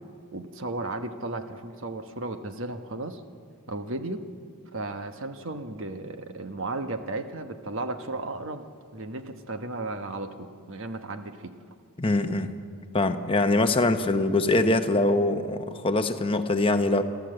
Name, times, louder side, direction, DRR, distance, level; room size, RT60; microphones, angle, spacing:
voice 1, 0.3-3.2 3.7-4.3 4.7-8.6 8.9-11.5, right 2 dB, 60° right, 7 dB, 1.1 m, -34 dB
voice 2, 12.0-12.5 12.9-17.0, left 2 dB, 25° left, 8 dB, 0.9 m, -23 dB
28.5 x 13.0 x 7.8 m, 2.2 s
head